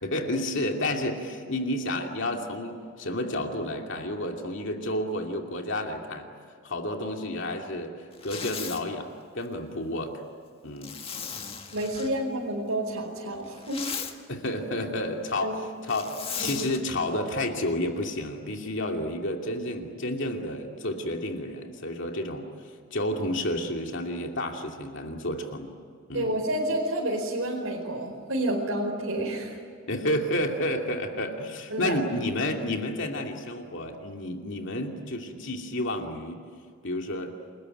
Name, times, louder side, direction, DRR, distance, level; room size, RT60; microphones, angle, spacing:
voice 1, 0.0-6.3 6.6-10.2 10.6-11.0 14.3-15.5 15.9-25.7 26.1-26.4 29.9-36.4 36.8-37.3, left 1 dB, 60° left, 3 dB, 2.6 m, -31 dB
Zipper (clothing), 8.1-8.8 10.8-12.1 13.4-14.1 15.9-16.8, left 6 dB, 25° left, 1.9 m, -36 dB
voice 2, 11.7-14.0 15.4-15.6 16.4-16.7 26.1-29.6 31.7-32.0, right 1 dB, 70° right, -2 dB, 4.8 m, -29 dB
29.5 x 20.5 x 9.3 m, 2.2 s
head